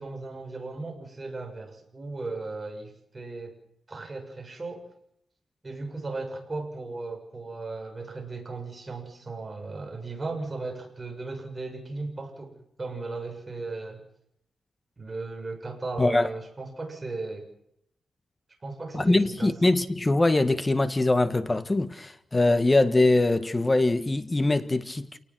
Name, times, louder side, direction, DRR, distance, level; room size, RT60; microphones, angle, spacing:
voice 1, 0.0-3.5 3.9-4.9 5.6-14.0 15.0-17.5 18.6-19.5, right 3 dB, 25° right, 7.3 m, -36 dB
voice 2, 16.0-16.3 18.9-25.2, left 2 dB, 20° left, 1.6 m, -23 dB
28.0 x 19.5 x 6.3 m
wide cardioid pair, 140°, 0 cm